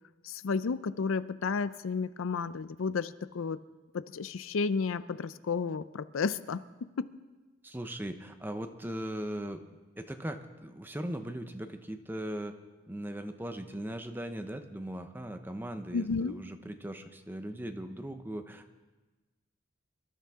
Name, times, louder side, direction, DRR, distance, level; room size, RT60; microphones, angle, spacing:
voice 1, 0.2-3.6 3.9-7.1 15.9-16.4, left 5 dB, 75° left, 15 dB, 0.5 m, -32 dB
voice 2, 7.6-9.6 10.0-12.5 12.9-18.8, right 1 dB, 10° right, 7 dB, 0.7 m, -39 dB
24.5 x 13.0 x 3.6 m, 1.2 s
head